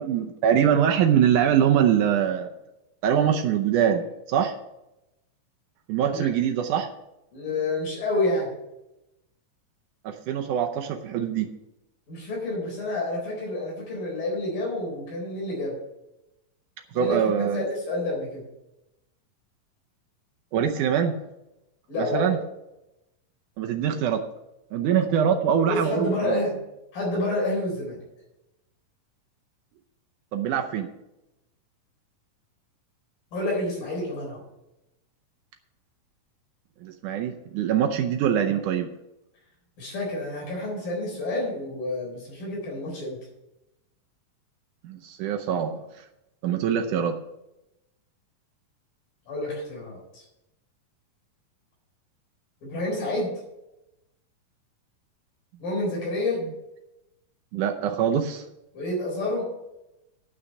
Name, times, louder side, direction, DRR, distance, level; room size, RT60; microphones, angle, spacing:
voice 1, 0.0-2.5 3.0-4.5 5.9-6.9 10.0-11.5 16.9-17.7 20.5-21.2 22.0-22.4 23.6-24.2 24.7-26.4 30.3-30.9 36.8-38.9 44.8-45.8 46.4-47.2 57.5-58.4, right 8 dB, 75° right, 4 dB, 2.1 m, -23 dB
voice 2, 7.3-8.5 12.1-15.8 16.9-18.4 21.9-22.4 25.6-26.6 26.9-28.0 33.3-34.4 39.8-43.2 49.3-50.2 52.6-53.3 55.6-56.4 58.7-59.5, left 2 dB, 85° left, -3 dB, 5.8 m, -29 dB
9.7 x 6.2 x 7.9 m, 0.90 s
omnidirectional pair, 3.9 m